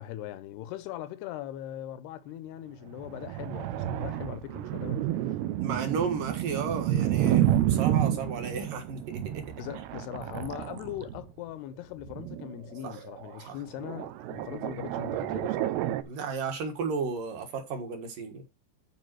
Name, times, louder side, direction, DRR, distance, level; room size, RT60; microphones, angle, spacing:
voice 1, 0.0-5.4 9.6-15.8, left 12 dB, 80° left, 2.6 m, -40 dB
sound 1, 3.0-11.3 12.1-13.5 13.8-16.0, right 12 dB, 80° right, 2.6 m, -30 dB
voice 2, 5.6-9.4 12.8-13.0 13.5-13.6 16.0-18.4, right 5 dB, 60° right, 2.8 m, -33 dB
12.0 x 5.2 x 4.6 m
omnidirectional pair, 4.9 m